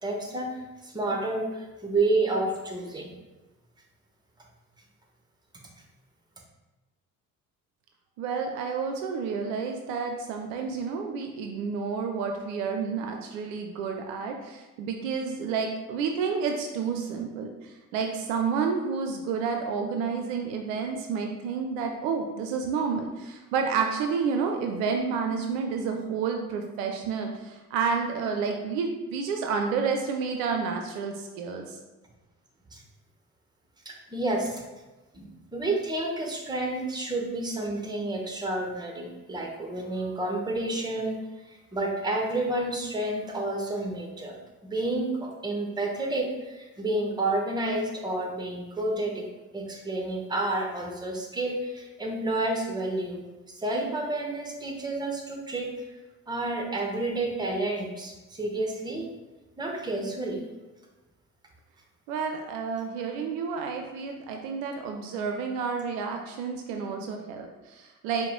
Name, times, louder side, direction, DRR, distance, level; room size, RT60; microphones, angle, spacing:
voice 1, 0.0-3.1 32.7-32.8 33.8-34.6 35.1-44.4 44.6-49.2 49.5-55.7 56.3-59.1 59.6-60.4, right 2 dB, 10° right, 0 dB, 0.8 m, -30 dB
voice 2, 8.2-31.8 62.1-68.3, right 5 dB, 60° right, 3 dB, 0.5 m, -30 dB
4.6 x 2.2 x 3.6 m, 1.1 s
figure-of-eight pair, 50°, 44 cm